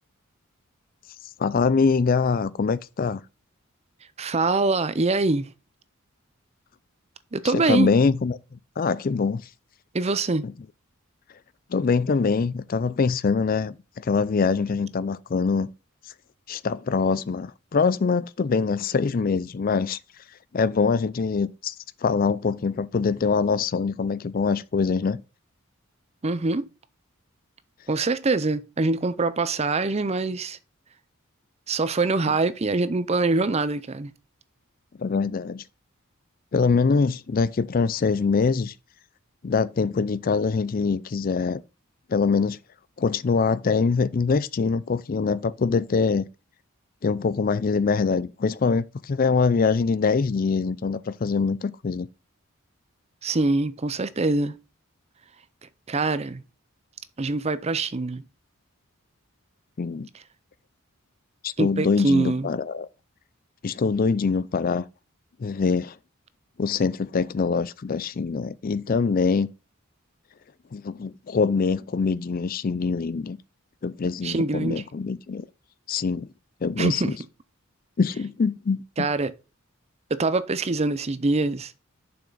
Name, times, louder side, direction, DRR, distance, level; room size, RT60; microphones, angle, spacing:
voice 1, 1.4-3.2 7.5-8.4 8.8-9.4 10.4-10.5 11.7-15.7 16.5-20.0 20.5-21.7 22.0-25.2 35.0-35.6 36.5-38.7 39.4-41.6 42.1-42.6 43.0-46.3 47.0-52.1 59.8-60.1 61.4-62.9 63.6-64.9 65.4-65.9 66.6-69.5 70.7-73.4 73.8-75.4 75.9-76.3 76.6-77.1 78.0-78.8, left 5 dB, 40° left, 0.4 m, -24 dB
voice 2, 4.2-5.5 7.3-7.9 9.9-10.5 26.2-26.7 27.9-30.6 31.7-34.1 53.2-54.6 55.9-56.4 57.2-58.2 61.6-62.5 74.2-74.8 76.8-77.1 79.0-79.3 80.1-81.7, right 3 dB, 30° right, 0.6 m, -24 dB
7.1 x 5.8 x 3.9 m
head